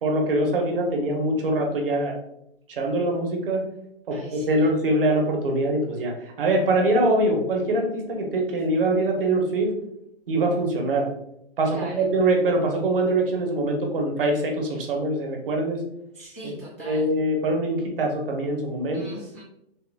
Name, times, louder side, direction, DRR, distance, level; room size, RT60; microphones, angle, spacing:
voice 1, 0.0-2.1 2.7-3.6 4.1-9.7 10.3-11.1 11.6-15.8 16.4-16.5 16.8-19.0, right 1 dB, 55° right, 2 dB, 0.9 m, -23 dB
voice 2, 4.1-4.7 11.6-12.1 16.1-17.1 18.9-19.4, right 1 dB, 15° left, -9 dB, 0.3 m, -41 dB
3.3 x 2.3 x 3.3 m, 0.79 s
hypercardioid pair, 165°, 33 cm